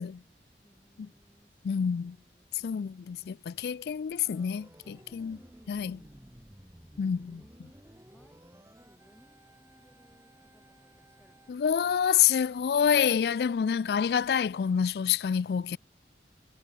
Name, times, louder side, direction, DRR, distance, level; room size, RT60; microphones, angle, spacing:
voice 1, 0.2-3.8 5.3-6.4 7.3-12.0, equal, 10° left, 7.9 m, -64 dB
voice 2, 1.6-2.2 2.6-5.4 5.7-6.0 7.0-7.4 11.5-15.8, left 8 dB, 65° left, 0.3 m, -27 dB
Organ, 4.1-11.5, equal, 15° right, 2.3 m, -55 dB
head